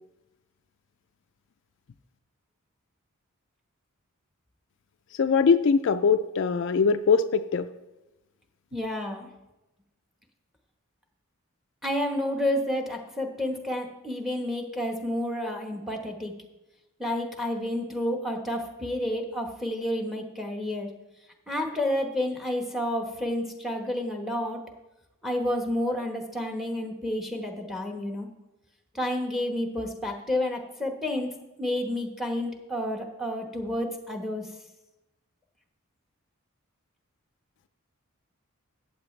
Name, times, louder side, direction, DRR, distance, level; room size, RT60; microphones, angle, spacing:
voice 1, 5.2-7.7, left 5 dB, 55° left, 9 dB, 0.4 m, -22 dB
voice 2, 8.7-9.3 11.8-16.3 17.0-20.9 21.5-24.6 25.2-28.3 28.9-34.5, left 1 dB, ahead, 3 dB, 1.1 m, -30 dB
14.5 x 8.6 x 3.2 m, 1.0 s
head